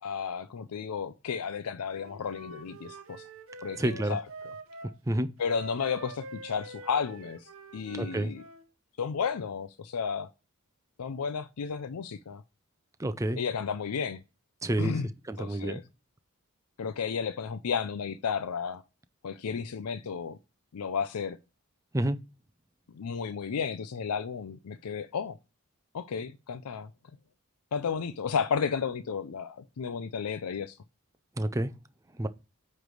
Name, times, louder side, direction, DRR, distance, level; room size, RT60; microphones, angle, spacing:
voice 1, 0.0-3.3 3.6-4.2 5.4-8.4 9.0-10.3 11.0-12.4 13.4-14.2 14.8-15.1 15.4-15.8 16.8-18.8 19.2-20.4 20.7-21.4 22.9-25.4 25.9-26.9 27.7-30.8, left 6 dB, 90° left, 0.5 m, -33 dB
Wind instrument woodwind instrument, 1.8-4.9 5.4-8.7, right 2 dB, 65° right, 1.1 m, -45 dB
voice 2, 3.8-4.2 5.1-5.3 7.9-8.3 13.0-13.4 14.6-15.0 15.3-15.8 21.9-22.2 31.4-31.7 32.2-32.3, right 1 dB, 15° right, 0.4 m, -28 dB
9.1 x 3.3 x 4.8 m
head